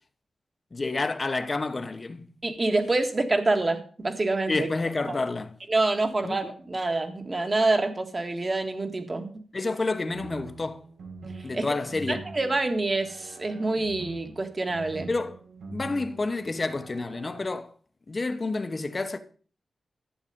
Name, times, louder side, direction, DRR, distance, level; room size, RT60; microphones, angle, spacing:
voice 1, 0.7-2.3 4.5-5.5 6.2-6.4 9.5-10.8 11.4-12.2 15.1-15.4 15.7-17.7 18.1-19.2, left 3 dB, 35° left, 1.0 m, -29 dB
voice 2, 2.4-4.7 5.1-5.2 5.7-9.3 11.5-11.8 12.1-15.1, right 2 dB, 30° right, 1.7 m, -26 dB
sound 1, 10.1-17.5, right 3 dB, 85° right, 2.0 m, -44 dB
11.5 x 8.2 x 5.3 m
wide cardioid pair, 100°, 0 cm